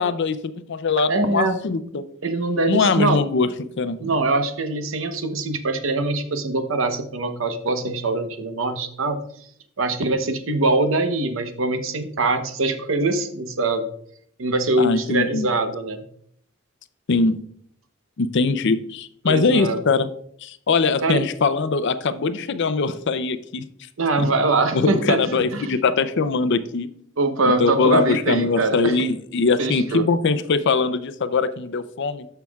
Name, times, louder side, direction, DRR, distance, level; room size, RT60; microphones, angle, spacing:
voice 1, 0.0-2.0 2.7-4.0 14.8-15.5 17.1-17.4 18.2-20.1 20.4-23.6 24.2-24.3 24.7-26.9 27.6-32.3, left 4 dB, 60° left, 12 dB, 0.5 m, -22 dB
voice 2, 1.1-1.6 2.2-3.2 4.0-9.2 9.8-13.9 14.4-16.1 19.2-19.8 21.0-21.2 24.0-25.8 27.2-29.0 29.6-30.1, right 2 dB, 70° right, 8 dB, 0.9 m, -23 dB
13.5 x 5.8 x 2.3 m, 0.65 s
head